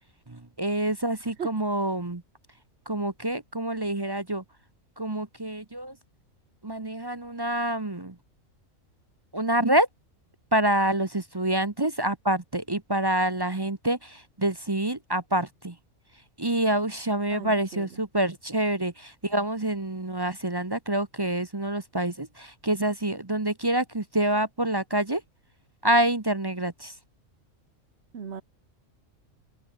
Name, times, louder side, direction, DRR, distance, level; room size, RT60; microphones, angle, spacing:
voice 1, 0.3-2.2 2.9-4.4 5.0-6.0 6.6-8.2 9.3-9.9 10.5-15.8 16.4-25.2 25.8-27.0, right 1 dB, 20° right, 0.9 m, -27 dB
voice 2, 17.3-17.9 28.1-28.4, right 7 dB, 55° right, 1.6 m, -36 dB
open air
omnidirectional pair, 1.4 m